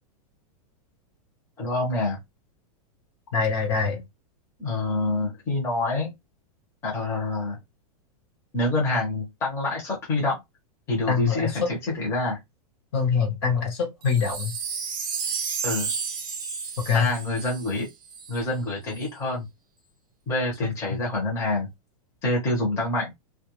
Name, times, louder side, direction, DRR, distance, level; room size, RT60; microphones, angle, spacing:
voice 1, 1.6-2.2 4.6-6.1 6.8-7.6 8.5-10.4 10.9-12.4 15.6-15.9 16.9-17.9 18.3-19.5 20.3-21.7 22.2-23.1, left 2 dB, 15° left, 0.7 m, -26 dB
voice 2, 3.3-4.0 11.1-11.5 12.9-14.5 16.8-17.1, left 5 dB, 45° left, 0.8 m, -24 dB
Wind chime, 14.0-18.4 18.9-19.0, right 6 dB, 30° right, 0.6 m, -32 dB
2.3 x 2.1 x 2.9 m
supercardioid pair, 170°, 19 cm